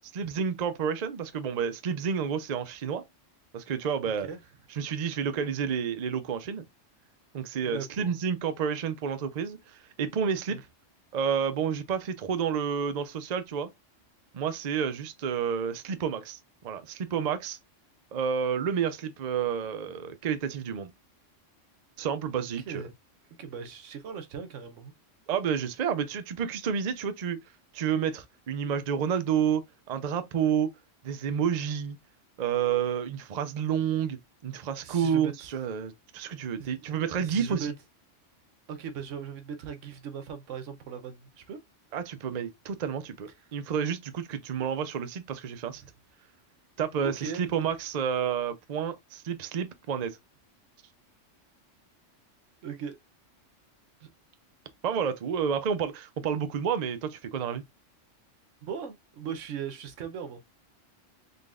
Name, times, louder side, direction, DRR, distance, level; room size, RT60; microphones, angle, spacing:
voice 1, 0.1-3.0 3.5-4.3 4.8-6.6 7.3-10.6 11.1-13.7 14.3-16.4 16.6-17.6 18.1-20.9 22.0-22.8 25.3-27.4 27.7-30.7 31.0-32.0 32.4-34.2 34.4-37.7 41.9-45.8 46.8-50.2 54.8-57.6, right 7 dB, 45° right, 0.6 m, -30 dB
voice 2, 4.0-4.4 7.6-8.2 10.5-10.6 22.6-22.9 23.4-24.9 34.8-35.5 36.6-37.7 38.7-41.6 45.8-45.9 47.0-47.4 52.6-53.0 54.0-54.1 58.6-60.4, right 7 dB, 80° right, 1.1 m, -39 dB
4.0 x 3.2 x 2.4 m
omnidirectional pair, 1.3 m